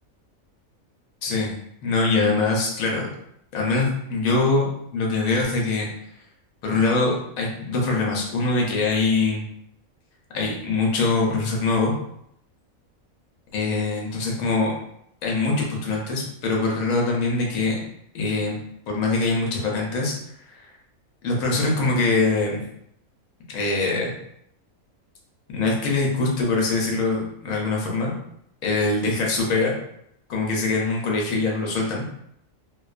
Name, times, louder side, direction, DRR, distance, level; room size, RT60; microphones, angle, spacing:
voice 1, 1.2-1.5 1.8-3.1 3.5-5.9 6.6-9.4 10.3-11.9 13.5-14.7 15.2-17.8 18.1-18.6 18.9-20.1 20.5-20.7 21.2-22.6 23.5-24.1 25.5-28.1 28.6-29.7 30.3-32.0, left 3 dB, 75° left, -1 dB, 1.0 m, -23 dB
2.3 x 2.3 x 2.3 m, 0.73 s
omnidirectional pair, 1.5 m